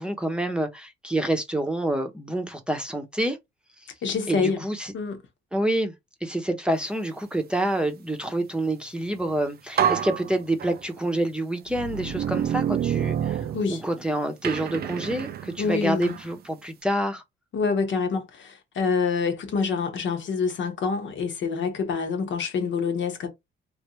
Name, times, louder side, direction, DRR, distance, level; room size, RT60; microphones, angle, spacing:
voice 1, 0.0-3.4 4.3-4.9 5.5-5.9 6.2-17.2, right 1 dB, 5° right, 0.8 m, -27 dB
voice 2, 4.0-4.6 4.9-5.2 13.5-13.8 15.6-16.1 17.5-23.3, left 5 dB, 70° left, 1.1 m, -26 dB
sound 1, 9.2-9.3 9.8-11.1 11.7-14.0 14.4-16.3, right 9 dB, 55° right, 0.5 m, -28 dB
3.2 x 2.6 x 3.0 m
cardioid pair, 90°, 20 cm